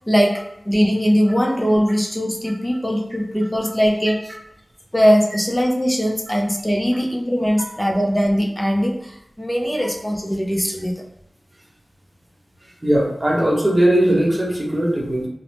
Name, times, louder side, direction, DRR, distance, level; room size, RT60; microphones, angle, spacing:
voice 1, 0.1-4.3 4.9-11.1, equal, 15° left, 0 dB, 0.5 m, -20 dB
voice 2, 12.8-15.3, right 1 dB, 30° right, -3 dB, 0.9 m, -18 dB
2.7 x 2.0 x 3.2 m, 0.83 s
wide cardioid pair, 50°, 0 cm